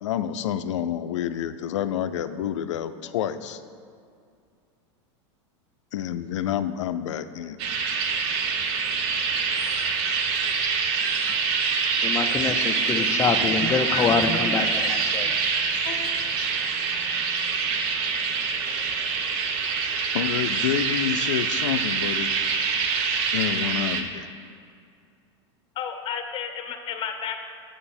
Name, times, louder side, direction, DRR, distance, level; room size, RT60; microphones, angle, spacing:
voice 1, 0.0-3.6 5.9-7.6 20.1-22.3 23.3-24.3, left 10 dB, 90° left, 12 dB, 0.4 m, -28 dB
sound 1, 7.6-24.0, right 5 dB, 60° right, 0.9 m, -25 dB
voice 2, 12.0-14.7 15.1-15.3, left 5 dB, 20° left, 7 dB, 0.5 m, -25 dB
voice 3, 25.8-27.4, left 8 dB, 35° left, 6 dB, 0.9 m, -32 dB
7.8 x 7.6 x 4.3 m, 2.3 s
supercardioid pair, 125°, 15 cm